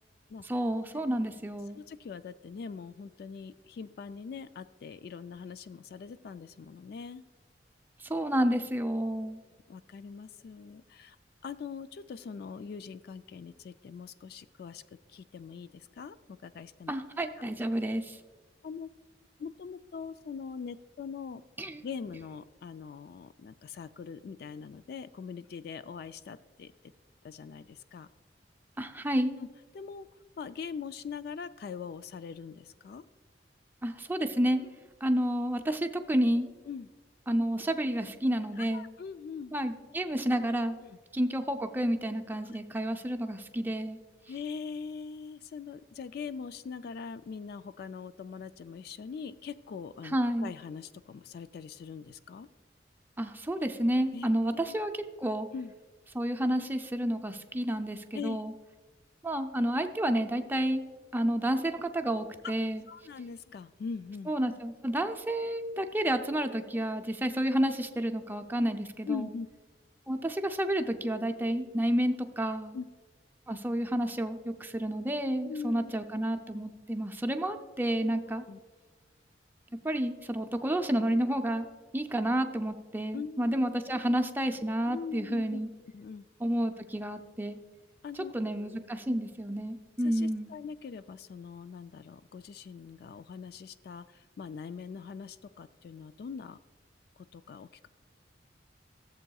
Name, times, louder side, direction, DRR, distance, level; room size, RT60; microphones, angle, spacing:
voice 1, 0.4-1.8 8.0-9.4 16.9-18.2 21.6-21.8 28.8-29.4 33.8-34.6 35.0-36.5 37.3-38.9 39.5-40.8 41.1-44.0 50.0-50.5 53.2-55.5 56.1-58.5 59.2-60.8 61.1-62.8 64.3-69.3 70.1-72.8 73.5-78.4 79.8-81.7 81.9-85.7 86.4-87.6 88.2-90.5, right 1 dB, 10° right, 6 dB, 0.5 m, -30 dB
voice 2, 1.8-7.2 9.7-11.2 11.4-14.8 15.1-16.9 18.6-18.9 19.4-21.4 21.8-26.7 27.2-28.1 29.4-29.5 29.7-30.1 30.4-33.0 34.6-34.7 36.7-36.9 38.6-39.5 40.8-41.0 42.5-42.6 44.3-52.5 54.1-54.3 54.7-54.8 55.5-55.7 58.1-58.4 62.9-64.3 69.1-69.5 72.7-72.9 75.5-75.9 78.3-78.6 83.1-83.7 84.9-86.3 88.0-88.3 89.1-89.3 90.0-96.6 97.3-97.9, left 6 dB, 60° left, 13 dB, 0.3 m, -42 dB
14.5 x 7.7 x 2.3 m, 1.4 s
head